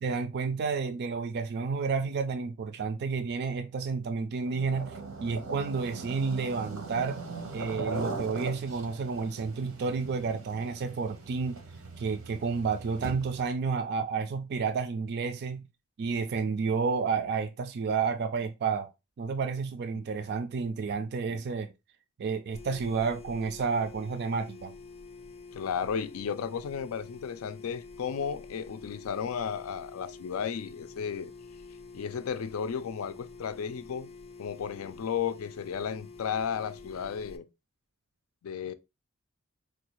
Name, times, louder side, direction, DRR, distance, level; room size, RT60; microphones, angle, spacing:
voice 1, 0.0-7.2 7.5-11.6 12.0-15.6 16.0-18.9 19.2-21.7 22.2-24.7, right 5 dB, 50° right, 0.3 m, -31 dB
sound 1, 4.4-13.5, right 3 dB, 85° right, 0.8 m, -40 dB
sound 2, 22.5-37.4, left 4 dB, 30° left, 0.5 m, -48 dB
voice 2, 25.5-31.3 31.9-34.1 34.4-37.5 38.4-38.7, left 7 dB, 80° left, 0.4 m, -34 dB
4.2 x 2.3 x 2.9 m
head